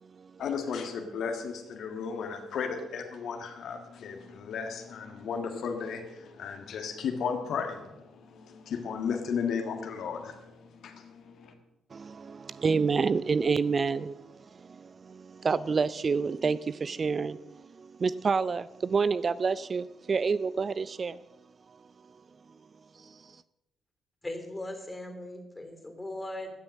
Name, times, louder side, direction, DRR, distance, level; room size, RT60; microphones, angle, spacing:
voice 1, 0.4-11.5, left 6 dB, 55° left, 5 dB, 1.5 m, -35 dB
voice 2, 11.9-21.2 21.7-21.8 22.9-23.4, right 5 dB, 40° right, 18 dB, 0.4 m, -29 dB
voice 3, 24.2-26.5, left 1 dB, 15° left, 6 dB, 3.1 m, -39 dB
15.5 x 9.4 x 6.3 m, 0.96 s
figure-of-eight pair, 40°, 0 cm